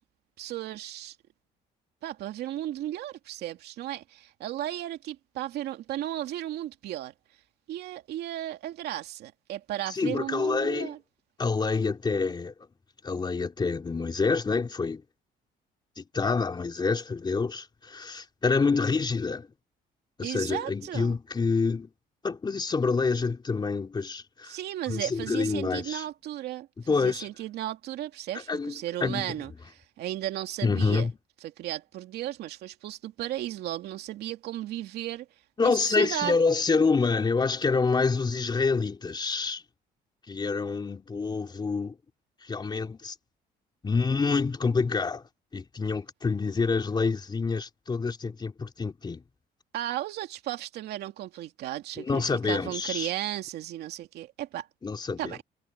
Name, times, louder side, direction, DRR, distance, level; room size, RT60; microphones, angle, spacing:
voice 1, 0.4-1.2 2.0-7.1 7.7-11.0 20.2-21.2 24.4-31.1 31.4-35.3 35.6-36.4 49.7-54.7 55.2-55.4, right 13 dB, 75° right, 2.6 m, -35 dB
voice 2, 9.9-10.9 11.4-12.5 13.0-15.0 16.0-19.5 20.2-21.9 22.2-24.6 24.9-26.0 26.9-27.3 28.3-29.4 30.6-31.1 35.6-39.6 40.3-41.9 42.4-43.1 43.8-45.2 45.5-49.2 52.0-53.1 54.8-55.4, left 4 dB, 25° left, 3.2 m, -27 dB
cardioid pair, 110°, 17 cm